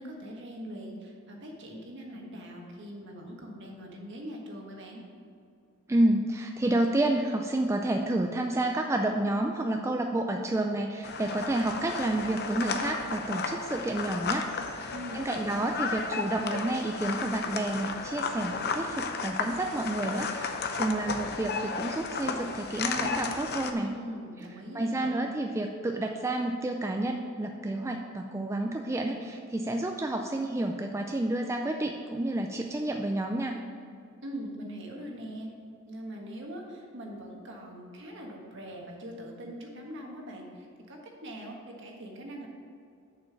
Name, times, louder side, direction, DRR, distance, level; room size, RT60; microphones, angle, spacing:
voice 1, 0.0-5.0 14.9-15.8 23.8-25.4 34.2-35.5 35.9-42.5, equal, 60° right, 0 dB, 1.5 m, -42 dB
voice 2, 5.9-20.5 20.8-24.0 24.7-33.6, right 1 dB, 15° right, 3 dB, 0.4 m, -30 dB
sound 1, 11.0-23.7, left 4 dB, 50° left, 0.7 m, -34 dB
7.0 x 5.7 x 6.9 m, 2.4 s
head